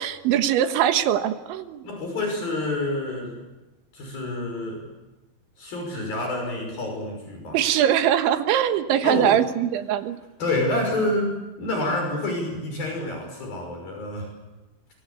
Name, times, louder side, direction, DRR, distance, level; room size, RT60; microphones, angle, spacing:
voice 1, 0.0-1.9 7.5-10.2, right 10 dB, 90° right, 8 dB, 3.8 m, -22 dB
voice 2, 1.8-3.4 3.9-4.9 5.6-7.6 9.0-9.4 10.4-14.3, left 1 dB, 55° left, 2 dB, 7.5 m, -28 dB
26.5 x 24.5 x 8.3 m, 1.1 s
omnidirectional pair, 5.2 m